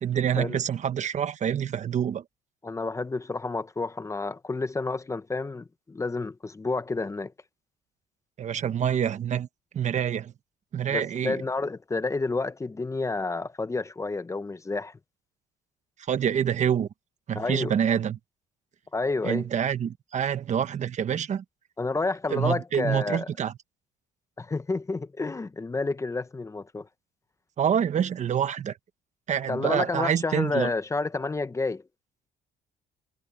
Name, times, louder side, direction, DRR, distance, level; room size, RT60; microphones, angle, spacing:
voice 1, 0.0-2.2 8.4-9.5 9.7-10.3 10.7-11.4 16.1-16.9 17.3-18.2 19.2-21.4 22.3-23.5 27.6-28.7 29.3-30.7, right 8 dB, 45° right, 1.2 m, -26 dB
voice 2, 2.6-7.3 10.9-14.9 17.3-17.7 18.9-19.5 21.8-23.3 24.4-26.9 29.5-31.8, left 3 dB, 20° left, 0.9 m, -30 dB
cardioid pair, 110°, 17 cm